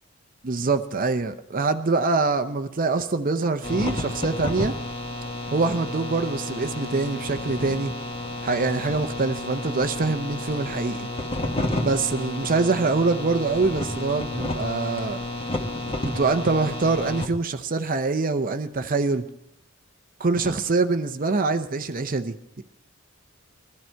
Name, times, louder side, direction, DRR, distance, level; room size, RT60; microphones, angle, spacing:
voice 1, 0.4-4.7 5.5-7.9 8.4-11.1 11.8-15.2 16.0-19.3 20.2-22.6, right 3 dB, 40° right, 9 dB, 0.7 m, -24 dB
sound 1, 3.6-17.3, left 2 dB, 25° left, 1.4 m, -31 dB
21.0 x 12.5 x 4.5 m, 0.83 s
head